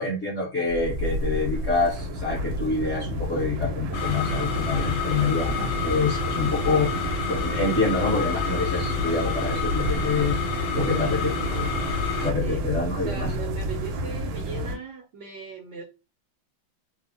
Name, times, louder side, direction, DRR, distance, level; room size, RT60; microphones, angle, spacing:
voice 1, 0.0-6.9 7.3-10.4 10.7-11.7 12.2-13.3, left 3 dB, 60° left, -5 dB, 0.7 m, -26 dB
sound 1, 0.7-14.8, equal, 90° right, 1.4 m, -30 dB
sound 2, 3.9-12.3, left 6 dB, 80° left, 1.3 m, -30 dB
voice 2, 10.9-11.3 12.4-12.6 12.9-15.8, right 5 dB, 75° right, 1 dB, 1.0 m, -38 dB
3.4 x 2.0 x 2.5 m, 0.31 s
omnidirectional pair, 2.2 m